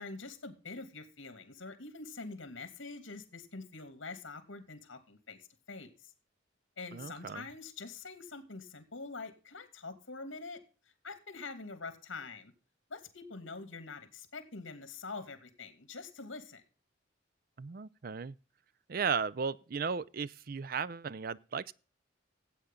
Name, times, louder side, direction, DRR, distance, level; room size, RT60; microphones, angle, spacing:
voice 1, 0.0-5.4 5.7-6.1 6.8-10.6 10.8-12.5 12.9-16.6, left 3 dB, 75° left, 2.6 m, -45 dB
voice 2, 6.9-7.4 17.6-18.4 18.9-21.7, right 5 dB, 50° right, 0.5 m, -35 dB
14.5 x 8.4 x 3.7 m
head